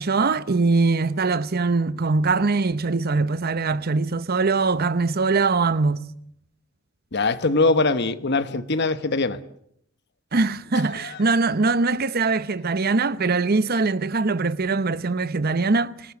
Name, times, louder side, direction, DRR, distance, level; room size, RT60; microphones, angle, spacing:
voice 1, 0.0-6.1 10.3-16.1, right 3 dB, 50° right, 0.9 m, -22 dB
voice 2, 7.1-9.4, left 3 dB, 55° left, 1.2 m, -22 dB
27.0 x 18.0 x 8.2 m
head